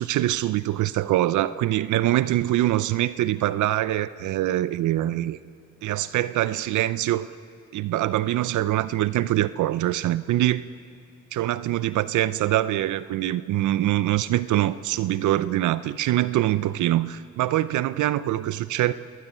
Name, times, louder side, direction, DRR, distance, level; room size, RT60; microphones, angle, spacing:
voice 1, 0.0-5.4 5.8-7.3 7.7-10.7 11.3-18.9, right 14 dB, 75° right, 15 dB, 0.6 m, -24 dB
27.0 x 20.0 x 9.1 m, 2.5 s
cardioid pair, 90°, 30 cm